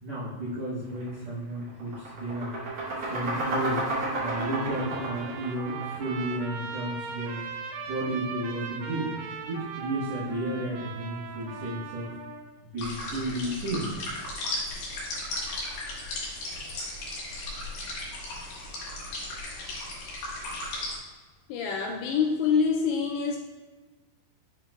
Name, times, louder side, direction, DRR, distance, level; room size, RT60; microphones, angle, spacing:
voice 1, 0.0-2.6 2.9-3.9 4.2-7.4 7.8-9.1 9.5-12.1 12.6-13.9, right 1 dB, 70° right, -11 dB, 1.6 m, -32 dB
sound 1, 0.9-1.1 1.5-6.4, right 2 dB, 45° right, 2.4 m, -31 dB
Trumpet, 3.9-12.5, right 5 dB, 85° right, 3.2 m, -39 dB
sound 2, 12.8-21.0, left 1 dB, 60° left, 2.6 m, -36 dB
voice 2, 21.5-23.4, left 6 dB, 80° left, 0 dB, 2.6 m, -26 dB
7.7 x 5.8 x 2.3 m, 1.3 s
omnidirectional pair, 5.4 m